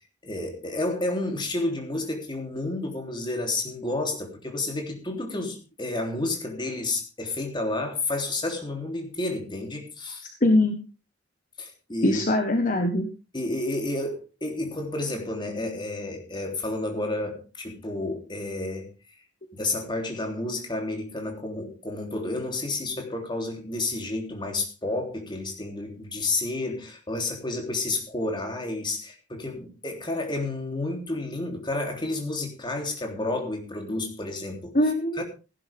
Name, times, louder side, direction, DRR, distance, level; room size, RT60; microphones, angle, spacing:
voice 1, 0.2-10.3 11.6-12.2 13.3-18.9 19.5-34.7 35.2-35.3, left 2 dB, 25° left, 2 dB, 3.4 m, -30 dB
voice 2, 10.4-10.8 12.0-13.1 34.7-35.2, left 1 dB, 45° left, 5 dB, 1.4 m, -22 dB
16.5 x 11.0 x 3.6 m, 0.32 s
head